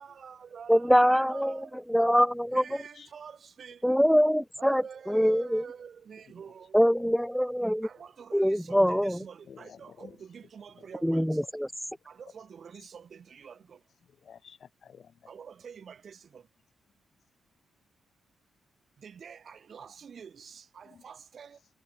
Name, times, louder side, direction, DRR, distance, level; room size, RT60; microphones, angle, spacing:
voice 1, 0.0-1.8 2.5-3.8 4.6-6.8 7.8-11.4 12.1-13.8 15.3-16.5 19.0-21.6, right 7 dB, 60° right, 4.4 m, -47 dB
voice 2, 0.7-1.6 1.9-2.6 3.8-5.6 6.7-7.9 8.3-9.2 11.0-11.7, equal, ahead, 0.7 m, -24 dB
voice 3, 2.7-3.1 3.7-3.8 4.2-4.5 6.3-6.4 6.9-7.2 8.0-8.1 9.3-11.6 11.9-12.0 12.4-12.5 13.9-15.3 19.8-19.9 20.8-21.0 21.5-21.7, left 7 dB, 65° left, 3.5 m, -55 dB
supercardioid pair, 50°, 0 cm